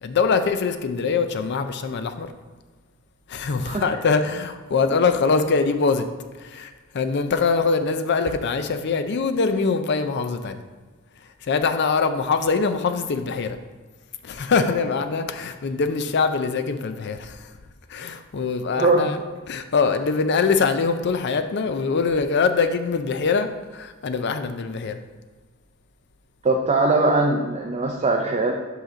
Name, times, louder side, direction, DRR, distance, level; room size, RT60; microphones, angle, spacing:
voice 1, 0.0-2.3 3.3-6.1 6.4-10.6 11.4-13.6 14.2-17.5 17.9-19.2 19.5-25.0, left 4 dB, 55° left, 9 dB, 0.5 m, -23 dB
voice 2, 18.7-19.1 26.4-28.5, right 2 dB, 30° right, 1 dB, 0.5 m, -21 dB
5.7 x 5.6 x 3.8 m, 1.4 s
head